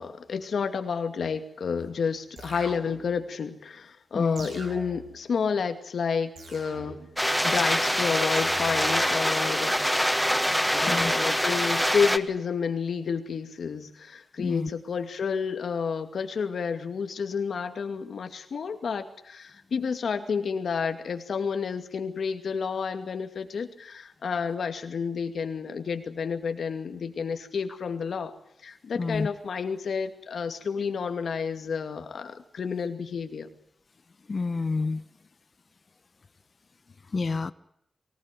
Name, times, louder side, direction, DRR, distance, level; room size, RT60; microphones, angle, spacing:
voice 1, 0.0-7.0 7.4-9.8 10.7-28.3 28.6-33.5, left 6 dB, 85° left, 7 dB, 2.4 m, -30 dB
sound 1, 2.4-3.3 4.4-5.3 6.4-7.3 8.4-9.2, right 3 dB, 80° right, 6.2 m, -43 dB
voice 2, 4.1-4.5 10.8-11.1 14.4-14.7 28.9-29.3 34.3-35.0 37.1-37.5, left 3 dB, 50° left, 13 dB, 1.0 m, -28 dB
sound 2, 7.2-12.2, equal, ahead, 1.5 m, -25 dB
24.5 x 18.5 x 9.2 m, 0.74 s
wide cardioid pair, 95°, 0 cm